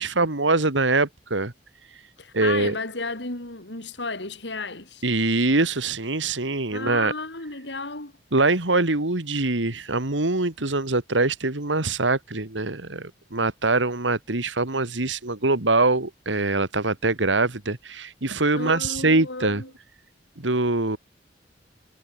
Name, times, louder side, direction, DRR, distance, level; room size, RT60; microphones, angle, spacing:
voice 1, 0.0-1.5 2.3-2.7 5.0-7.1 8.3-19.6 20.4-21.0, right 3 dB, 85° right, 2.4 m, -23 dB
voice 2, 2.2-5.0 6.7-8.1 18.5-19.7, left 3 dB, 65° left, 3.8 m, -33 dB
head